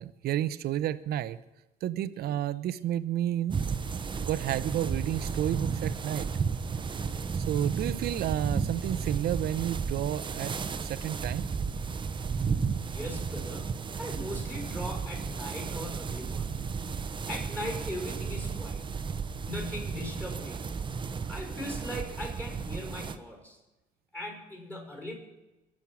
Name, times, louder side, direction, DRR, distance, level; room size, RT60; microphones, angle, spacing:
voice 1, 0.0-1.4 1.8-3.6 4.2-6.3 7.3-10.5 10.8-11.5, right 12 dB, 70° right, 14 dB, 0.9 m, -31 dB
sound 1, 3.5-23.2, right 5 dB, 30° right, 1.0 m, -33 dB
voice 2, 12.8-16.6 16.9-18.8 19.4-20.6 21.3-23.6 24.1-25.1, left 1 dB, 10° left, 1 dB, 5.8 m, -39 dB
23.0 x 7.6 x 6.3 m, 1.0 s
cardioid pair, 110°, 17 cm